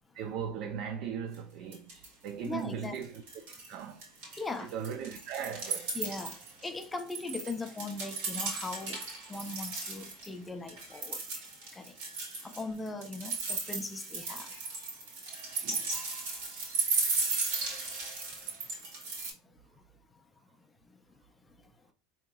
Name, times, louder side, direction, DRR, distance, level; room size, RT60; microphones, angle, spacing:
voice 1, 0.1-3.2 3.7-5.9 15.6-15.9, right 7 dB, 60° right, 0.4 m, -39 dB
sound 1, 1.3-1.4 1.7-2.3 2.6-3.7 4.0-10.3 10.7-19.3, right 4 dB, 85° right, 1.5 m, -36 dB
voice 2, 2.4-2.9 4.4-4.7 5.9-9.0 9.3-11.2 11.7-12.0 12.4-14.5 17.8-17.9 20.1-20.2 20.9-21.0, left 3 dB, 15° left, 0.4 m, -39 dB
3.7 x 2.8 x 2.3 m
supercardioid pair, 120°, 0 cm